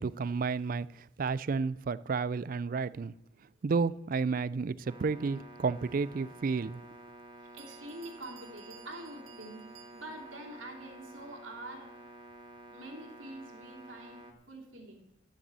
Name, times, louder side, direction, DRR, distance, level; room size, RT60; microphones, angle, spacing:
voice 1, 0.0-3.1 3.6-6.8, right 4 dB, 45° right, 18 dB, 0.4 m, -31 dB
sound 1, 4.8-14.3, right 1 dB, 25° right, 1.3 m, -51 dB
Bell, 7.2-7.3 7.6-10.4, right 11 dB, 90° right, 1.5 m, -56 dB
voice 2, 7.4-9.6 9.9-11.9 12.7-15.0, right 1 dB, 70° right, 1 dB, 2.9 m, -46 dB
12.0 x 8.0 x 7.6 m, 0.83 s
head